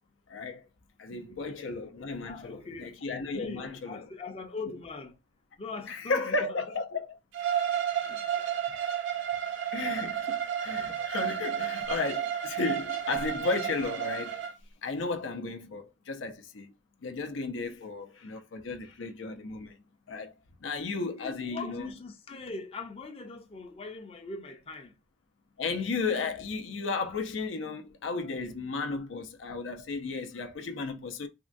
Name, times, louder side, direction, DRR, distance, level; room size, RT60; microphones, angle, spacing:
voice 1, 0.3-0.6 1.0-4.3 4.7-4.8 5.9-7.2 9.7-14.4 14.8-16.7 17.0-19.8 20.1-20.3 20.6-21.9 25.6-31.3, left 3 dB, 80° left, 0.5 m, -34 dB
voice 2, 2.2-2.9 3.3-5.2 5.6-6.6 8.1-8.3 21.2-24.9, left 4 dB, 30° left, 0.5 m, -41 dB
Bowed string instrument, 7.3-14.5, right 9 dB, 80° right, 0.6 m, -32 dB
3.5 x 2.1 x 2.5 m
head